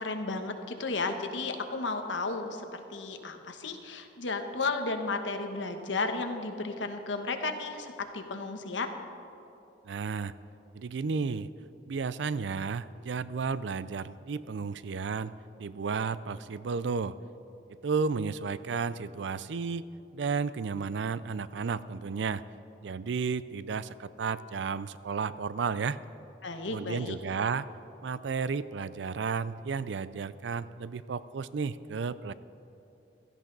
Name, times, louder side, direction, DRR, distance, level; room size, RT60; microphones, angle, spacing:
voice 1, 0.0-8.9 26.4-27.2, left 3 dB, 90° left, 6 dB, 1.2 m, -33 dB
voice 2, 9.8-10.3 10.7-11.5 11.9-15.3 15.6-17.2 17.8-19.9 20.1-22.4 22.8-26.0 26.7-27.7 28.0-32.3, right 5 dB, 75° right, 16 dB, 0.4 m, -33 dB
16.5 x 13.5 x 4.0 m, 2.8 s
head